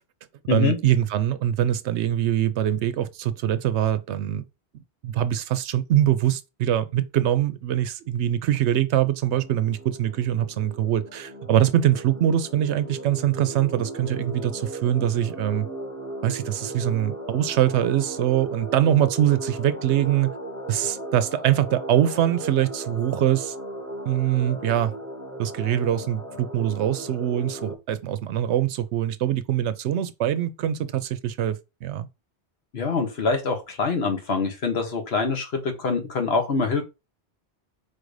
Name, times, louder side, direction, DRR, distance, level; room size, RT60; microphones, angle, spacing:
voice 1, 0.5-4.4 5.0-15.7 16.2-20.3 20.7-23.5 24.1-24.9 25.4-32.1, right 11 dB, 90° right, 0.9 m, -23 dB
sound 1, 9.3-27.8, right 1 dB, 15° right, 0.9 m, -37 dB
voice 2, 32.7-36.8, left 4 dB, 70° left, 1.2 m, -25 dB
4.3 x 2.6 x 4.7 m
omnidirectional pair, 1.1 m